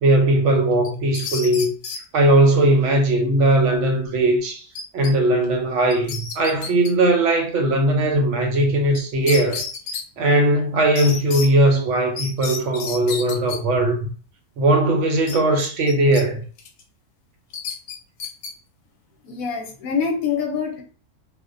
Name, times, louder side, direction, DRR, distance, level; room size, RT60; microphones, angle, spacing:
voice 1, 0.0-1.7 2.1-4.6 4.9-9.6 10.2-14.0 14.6-16.4, right 1 dB, 65° right, 0.8 m, -19 dB
sound 1, 0.8-2.0 4.7-5.1 5.4-5.5 5.9-6.9 8.9-9.0 9.3-10.0 11.0-11.5 12.2-13.6 15.3-16.2 16.6-16.8 17.5-18.5, left 5 dB, 90° left, 1.1 m, -31 dB
voice 2, 19.2-20.8, left 6 dB, 70° left, 1.0 m, -25 dB
2.4 x 2.1 x 2.4 m
omnidirectional pair, 1.6 m